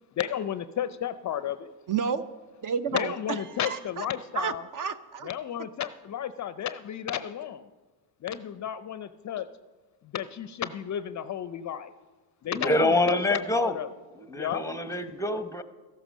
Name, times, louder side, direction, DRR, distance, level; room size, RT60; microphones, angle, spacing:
voice 1, 0.2-1.7 2.9-4.6 5.2-7.7 8.2-9.5 10.1-11.9 12.4-13.9 14.3-14.6, left 10 dB, 35° left, 13 dB, 0.5 m, -33 dB
voice 2, 1.9-2.3 2.6-4.0 4.3-5.3, right 6 dB, 40° right, 13 dB, 0.7 m, -31 dB
voice 3, 12.5-13.7 14.2-15.6, left 2 dB, 5° left, 10 dB, 0.8 m, -26 dB
14.0 x 11.0 x 6.2 m, 1.3 s
supercardioid pair, 90°, 49 cm